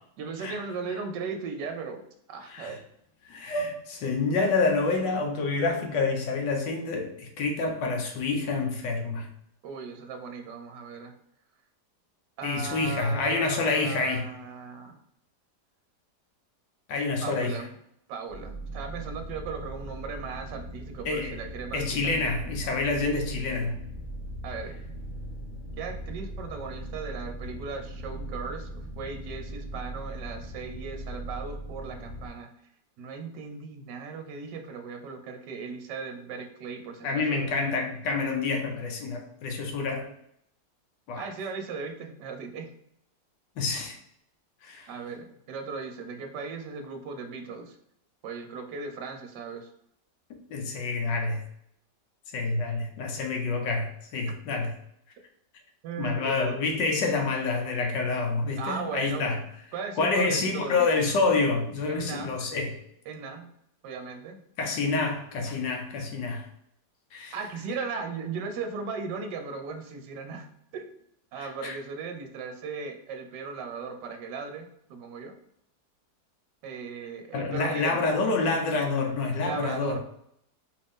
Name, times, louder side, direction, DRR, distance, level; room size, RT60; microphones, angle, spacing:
voice 1, 0.2-2.0 2.3-2.8 9.6-11.1 12.4-15.0 17.2-17.7 18.1-22.3 24.4-24.8 25.8-32.5 33.0-37.5 41.2-42.7 44.9-47.8 48.2-49.7 55.8-56.6 58.6-59.3 59.7-60.9 61.9-62.4 63.1-63.5 63.8-64.4 67.3-70.5 70.7-70.8 71.3-75.4 76.6-78.0 79.3-80.0, right 5 dB, 75° right, 5 dB, 1.3 m, -37 dB
voice 2, 3.2-9.3 12.4-14.3 16.9-17.6 21.0-21.4 21.7-23.8 37.0-40.1 41.1-41.3 43.6-44.0 44.6-44.9 50.5-51.4 52.3-54.7 56.0-59.4 60.0-62.7 64.6-66.5 67.1-67.3 71.4-71.8 77.3-80.0, left 3 dB, 80° left, 3 dB, 1.5 m, -28 dB
sound 1, 18.3-32.3, right 1 dB, 60° left, 2.1 m, -39 dB
5.1 x 2.8 x 3.5 m, 0.73 s
omnidirectional pair, 2.0 m